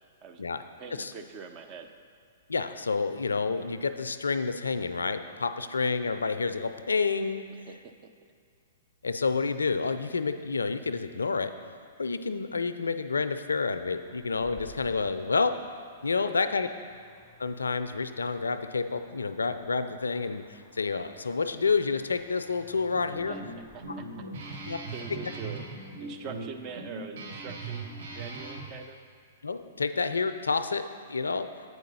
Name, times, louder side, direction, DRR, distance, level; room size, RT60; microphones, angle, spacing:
voice 1, 0.8-1.9 7.5-8.1 16.2-16.3 23.3-23.4 23.7-25.7 26.0-29.0, right 5 dB, 35° right, 6 dB, 0.6 m, -44 dB
voice 2, 2.5-7.4 9.0-11.5 12.0-15.5 16.0-16.7 17.4-23.4 24.7-24.8 29.4-31.5, left 4 dB, 85° left, 10 dB, 0.3 m, -29 dB
sound 1, 13.8-25.5, equal, 10° right, 2.0 m, -57 dB
Guitar, 22.9-28.7, right 3 dB, 60° right, 1.2 m, -40 dB
8.1 x 4.7 x 5.4 m, 2.2 s
hypercardioid pair, 115°, 0 cm